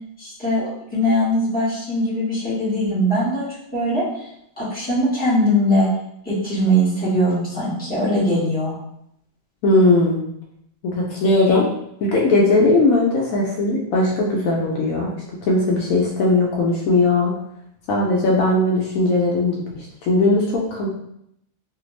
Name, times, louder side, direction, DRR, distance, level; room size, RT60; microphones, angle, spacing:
voice 1, 0.2-3.5 3.7-4.0 4.6-5.9 6.2-8.7, equal, 5° left, -10 dB, 1.1 m, -21 dB
voice 2, 9.6-10.2 10.8-11.7 12.0-15.1 15.4-17.3 17.9-20.9, left 2 dB, 75° left, -2 dB, 1.0 m, -18 dB
2.8 x 2.4 x 3.1 m, 0.75 s
omnidirectional pair, 1.5 m